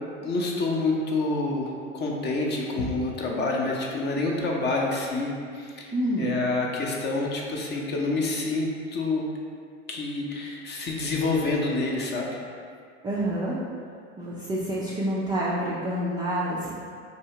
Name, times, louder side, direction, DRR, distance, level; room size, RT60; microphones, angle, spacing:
voice 1, 0.2-9.2 9.9-12.3, left 2 dB, 30° left, -1 dB, 0.6 m, -27 dB
voice 2, 5.9-6.3 13.0-13.6 14.2-16.7, right 1 dB, 15° right, -8 dB, 0.3 m, -28 dB
2.8 x 2.7 x 4.3 m, 2.2 s
hypercardioid pair, 105°, 36 cm